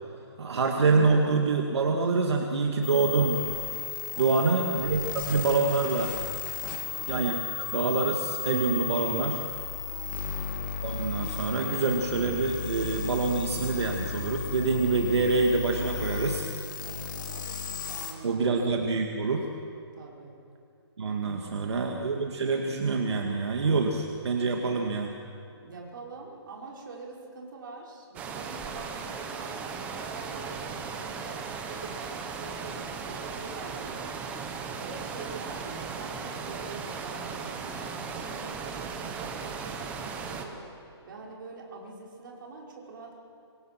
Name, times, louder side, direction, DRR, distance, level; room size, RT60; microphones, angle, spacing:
voice 1, 0.4-3.4 4.2-6.2 7.1-9.4 10.8-16.5 18.2-19.5 21.0-25.2, right 4 dB, 75° right, 2 dB, 2.3 m, -26 dB
sound 1, 2.8-18.1, left 7 dB, 45° left, 2.9 m, -35 dB
voice 2, 4.1-4.6 6.6-7.1 9.9-10.3 16.8-18.7 20.0-20.3 21.4-21.7 25.6-34.0 34.7-40.6 41.0-43.2, right 3 dB, 50° right, -2 dB, 5.5 m, -44 dB
sound 2, 28.1-40.4, right 5 dB, 10° right, 1.0 m, -37 dB
26.5 x 25.0 x 6.0 m, 2.6 s
hypercardioid pair, 170°, 14 cm